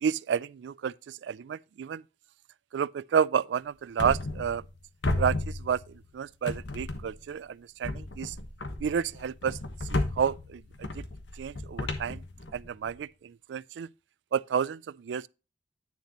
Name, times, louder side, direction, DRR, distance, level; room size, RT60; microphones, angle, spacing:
voice 1, 0.0-2.0 2.7-4.6 5.2-5.8 6.1-8.3 8.8-9.6 9.9-10.6 10.9-11.0 11.4-12.2 12.5-13.9 14.3-15.3, right 7 dB, 75° right, 0.3 m, -30 dB
sound 1, 4.0-4.8 5.0-6.1 6.5-7.3 7.8-12.9, left 2 dB, 85° left, 1.3 m, -34 dB
9.7 x 6.5 x 2.9 m
head